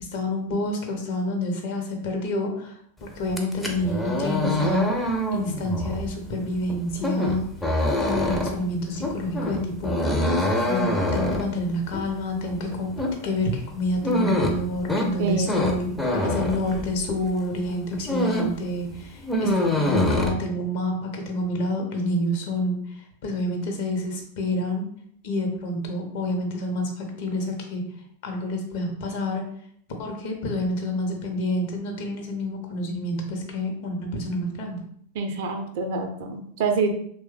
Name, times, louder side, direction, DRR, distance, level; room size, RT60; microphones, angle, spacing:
voice 1, 0.1-4.9 5.3-7.4 8.0-10.2 10.7-12.9 13.2-24.9 25.2-27.8 28.2-29.4 30.0-34.8, left 1 dB, 50° left, 2 dB, 0.7 m, -28 dB
sound 1, 3.2-17.3 17.7-18.6 18.9-20.3, left 1 dB, 5° left, 0.5 m, -25 dB
voice 2, 15.2-15.6 35.1-36.9, right 4 dB, 50° right, 5 dB, 0.5 m, -26 dB
3.1 x 2.1 x 3.2 m, 0.64 s
figure-of-eight pair, 90°, 0 cm